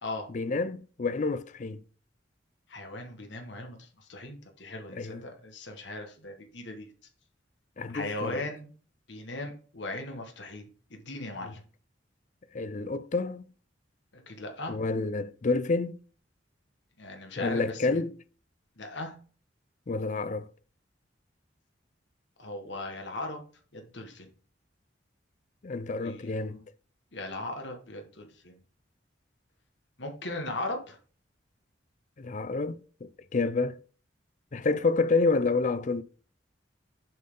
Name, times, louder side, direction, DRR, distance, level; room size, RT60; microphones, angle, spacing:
voice 1, 0.3-1.8 4.9-5.2 7.8-8.4 11.4-11.5 12.5-13.4 14.7-16.0 17.4-18.1 19.9-20.5 25.6-26.6 32.2-33.8 34.5-36.0, left 3 dB, 40° left, 0.5 m, -29 dB
voice 2, 2.7-6.9 7.9-8.7 9.1-10.6 10.9-11.6 14.3-14.8 17.0-18.0 18.8-19.1 22.4-23.4 23.7-24.3 26.0-26.4 27.1-28.6 30.0-31.0, left 2 dB, 70° left, 1.6 m, -38 dB
7.7 x 5.6 x 3.8 m
head